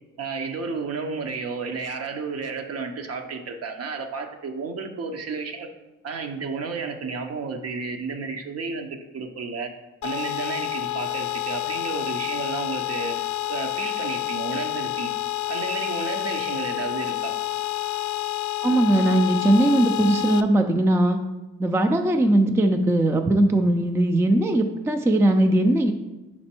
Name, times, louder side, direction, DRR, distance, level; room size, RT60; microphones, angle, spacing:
voice 1, 0.2-5.7 6.0-9.7 10.0-13.2 13.5-15.1 15.5-17.4, right 4 dB, 55° right, 5 dB, 0.8 m, -32 dB
sound 1, 10.0-20.4, left 15 dB, 70° left, 0.4 m, -29 dB
voice 2, 18.6-21.2 21.6-25.9, right 1 dB, 10° right, 6 dB, 0.4 m, -20 dB
5.2 x 4.4 x 4.3 m, 1.1 s
cardioid pair, 90°, 30 cm